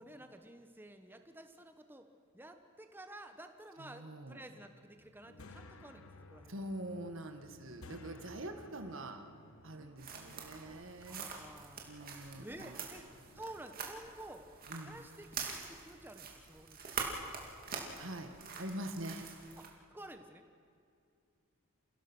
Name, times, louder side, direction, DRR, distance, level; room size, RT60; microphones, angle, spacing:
voice 1, 0.0-2.1 2.3-6.6 7.9-8.4 10.6-11.9 12.2-13.1 13.3-14.4 14.8-17.6 19.6-19.7 19.9-20.4, right 1 dB, 10° right, 7 dB, 1.1 m, -52 dB
voice 2, 3.8-4.4 6.5-9.2 9.6-11.3 11.8-12.8 14.7-15.0 18.0-18.3 18.6-19.3, right 1 dB, 60° right, 6 dB, 1.7 m, -44 dB
sound 1, 5.0-13.6, left 2 dB, 75° left, 1.3 m, -58 dB
sound 2, 10.0-19.7, right 5 dB, 40° right, 2.4 m, -45 dB
28.0 x 17.0 x 6.2 m, 2.4 s
head